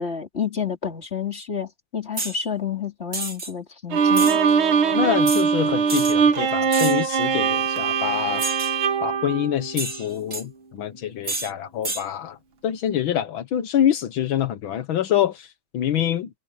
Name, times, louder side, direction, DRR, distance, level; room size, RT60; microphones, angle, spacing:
voice 1, 0.0-4.4, left 7 dB, 30° left, 3.2 m, -29 dB
sound 1, 2.2-2.4 3.1-3.5 4.1-4.4 5.3-5.5 5.9-6.1 6.7-7.1 8.4-8.8 9.8-10.4 11.2-11.5 11.8-12.0, right 3 dB, 40° right, 3.3 m, -29 dB
Bowed string instrument, 3.9-10.2, right 6 dB, 90° right, 2.3 m, -21 dB
voice 2, 4.9-8.5 9.0-12.4 12.6-16.3, left 10 dB, 80° left, 1.8 m, -25 dB
omnidirectional pair, 2.2 m